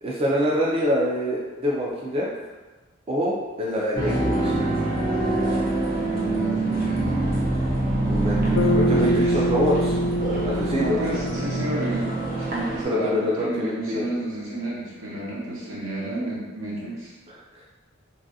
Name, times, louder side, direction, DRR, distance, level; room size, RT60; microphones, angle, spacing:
voice 1, 0.0-2.3 3.1-4.6 8.1-10.0 10.4-11.0 12.8-14.1 17.3-17.6, equal, 30° right, -4 dB, 0.3 m, -25 dB
sound 1, 4.0-12.8, right 2 dB, 45° right, 0.7 m, -25 dB
voice 2, 6.1-7.4 9.0-9.4 10.8-17.1, right 1 dB, 75° right, -6 dB, 1.0 m, -31 dB
Bass guitar, 8.6-13.0, left 1 dB, 80° left, 0.3 m, -26 dB
3.1 x 2.4 x 2.6 m, 1.2 s
head